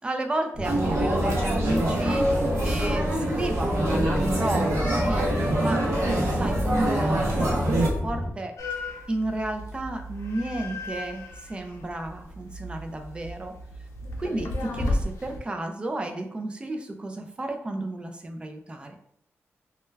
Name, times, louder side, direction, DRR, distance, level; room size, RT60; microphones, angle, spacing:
voice 1, 0.0-2.3 2.6-5.3 5.6-8.5 9.1-13.5 14.2-19.0, right 2 dB, 20° right, 4 dB, 0.3 m, -32 dB
sound 1, 0.5-8.3, left 1 dB, 15° left, 0.7 m, -30 dB
sound 2, 0.6-7.9, right 1 dB, 75° right, 0.6 m, -25 dB
sound 3, 8.6-15.4, left 1 dB, 85° left, 0.4 m, -34 dB
2.2 x 2.2 x 3.2 m, 0.72 s
wide cardioid pair, 130°, 5 cm